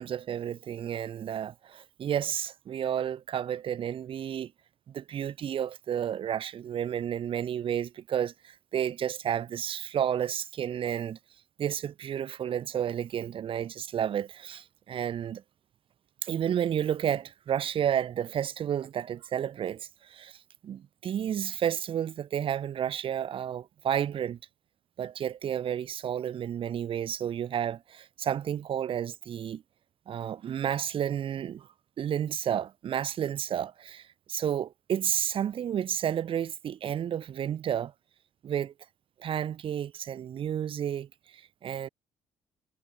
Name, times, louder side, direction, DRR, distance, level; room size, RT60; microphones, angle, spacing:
voice 1, 0.0-4.5 4.9-11.2 11.6-15.4 16.2-20.4 20.6-24.4 25.0-29.6 30.1-31.7 32.0-37.9 38.4-38.7 39.2-41.1 41.3-41.9, right 9 dB, 55° right, 4.0 m, -31 dB
cardioid pair, 115°, 11 cm